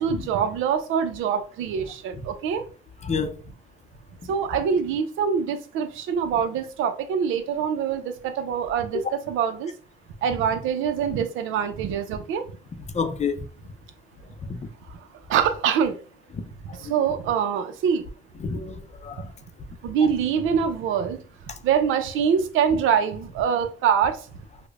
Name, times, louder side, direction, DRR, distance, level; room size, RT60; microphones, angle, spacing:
voice 1, 0.0-2.6 4.3-9.7 10.2-12.4 14.9-15.0 15.3-16.0 16.7-18.0 19.2-19.3 19.8-21.2 21.6-24.3, right 7 dB, 90° right, 0.6 m, -24 dB
voice 2, 3.0-3.4 12.9-13.5 14.5-14.6 16.7-17.0 18.4-19.3 21.5-21.6, left 5 dB, 35° left, 0.5 m, -29 dB
4.9 x 2.1 x 2.4 m
cardioid pair, 90°, 20 cm